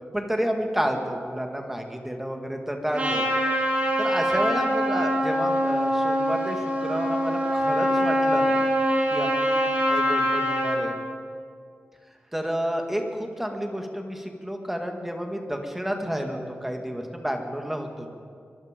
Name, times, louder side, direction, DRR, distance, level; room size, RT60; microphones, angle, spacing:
voice 1, 0.1-3.3 4.0-8.6 9.1-9.5 9.9-11.0 12.3-18.1, equal, 5° right, 3 dB, 2.0 m, -30 dB
Trumpet, 2.9-10.8, equal, 35° right, 5.7 m, -24 dB
23.0 x 23.0 x 5.2 m, 2.2 s
wide cardioid pair, 165°, 4 cm